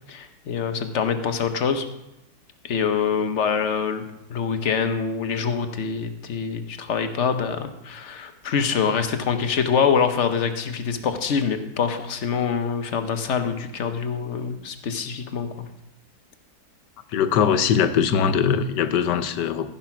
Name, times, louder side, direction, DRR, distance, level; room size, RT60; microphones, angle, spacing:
voice 1, 0.1-1.9 2.6-15.7, left 6 dB, 50° left, 8 dB, 1.1 m, -25 dB
voice 2, 17.1-19.7, left 7 dB, 85° left, 11 dB, 1.4 m, -21 dB
14.5 x 5.7 x 5.9 m, 0.87 s
omnidirectional pair, 1.8 m